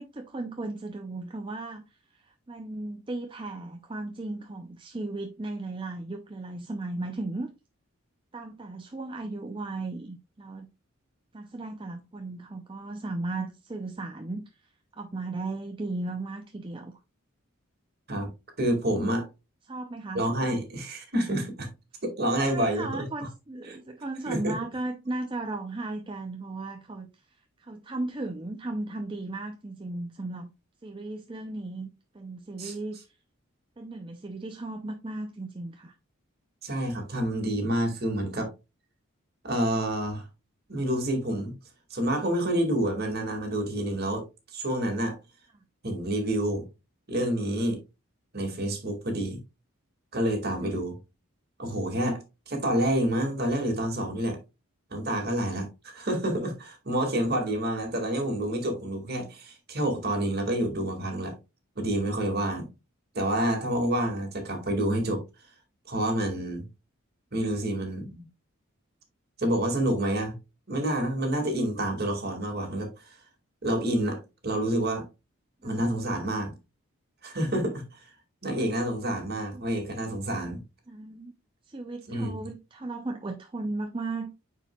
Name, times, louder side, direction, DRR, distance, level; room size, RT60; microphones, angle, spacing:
voice 1, 0.0-7.5 8.3-10.7 11.3-16.9 19.7-20.2 22.4-27.1 27.6-30.5 30.8-31.9 32.1-33.0 33.8-35.9 50.6-50.8 75.6-75.8 80.9-81.3 81.7-84.3, right 2 dB, 25° right, 0.5 m, -36 dB
voice 2, 18.6-19.3 20.1-21.7 22.0-23.1 24.3-24.5 32.6-32.7 36.6-38.5 39.4-40.2 40.7-41.5 41.9-44.2 44.5-45.2 45.8-46.7 47.1-47.8 48.3-49.4 50.1-50.9 51.6-52.2 52.5-54.4 54.9-61.3 61.8-62.7 63.1-65.2 65.9-66.7 67.3-68.2 69.4-70.4 70.7-73.1 73.6-75.0 75.6-76.5 77.2-78.0 78.4-80.6 82.1-82.3, right 1 dB, 45° right, 2.1 m, -28 dB
9.1 x 4.6 x 2.3 m
head